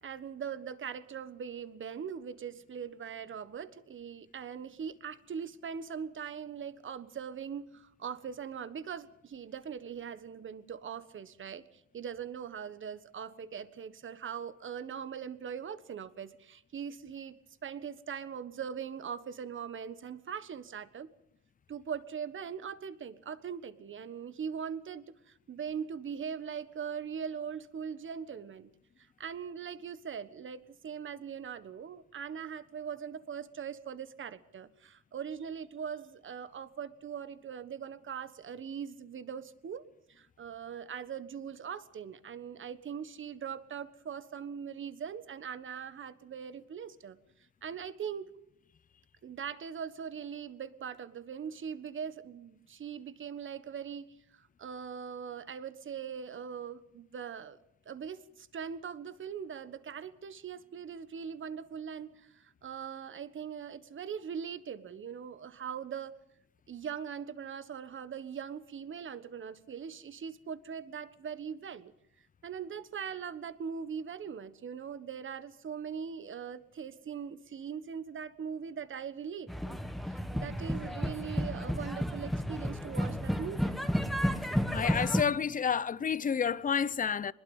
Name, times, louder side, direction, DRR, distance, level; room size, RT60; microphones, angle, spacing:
voice 1, 0.0-21.1 21.7-28.7 29.0-47.2 47.6-48.3 49.2-57.6 57.8-66.2 66.7-71.9 72.2-83.7, right 7 dB, 45° right, 1.4 m, -41 dB
sound 1, 79.5-85.2, equal, ahead, 1.7 m, -32 dB
voice 2, 84.7-87.3, left 7 dB, 30° left, 0.7 m, -30 dB
23.5 x 21.0 x 5.5 m
cardioid pair, 105°, 29 cm